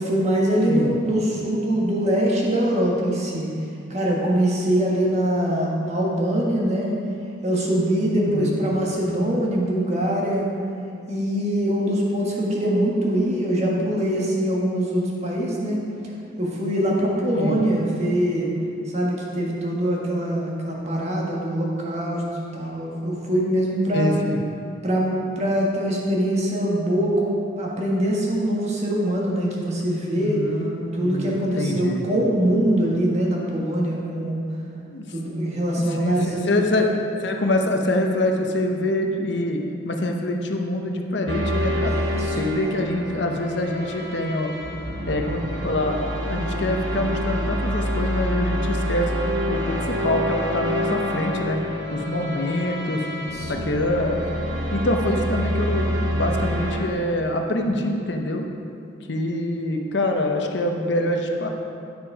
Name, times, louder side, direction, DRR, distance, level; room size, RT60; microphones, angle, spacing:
voice 1, 0.0-3.5 3.9-7.0 7.4-10.5 11.1-15.9 16.4-18.5 18.9-22.2 22.5-24.2 24.8-30.4 30.9-34.4 35.1-36.6 41.9-42.7 52.9-53.5, right 1 dB, 35° right, -3 dB, 1.5 m, -23 dB
voice 2, 8.2-8.6 17.4-17.6 23.9-24.4 30.2-32.1 34.9-35.4 36.0-36.9 37.2-41.9 42.3-44.5 45.1-49.1 49.5-51.6 51.9-53.1 53.5-54.2 54.7-58.5 59.1-61.5, left 1 dB, 65° left, 3 dB, 0.8 m, -25 dB
sound 1, 41.3-56.8, equal, 70° right, 1.0 m, -27 dB
10.0 x 6.2 x 4.8 m, 2.5 s
head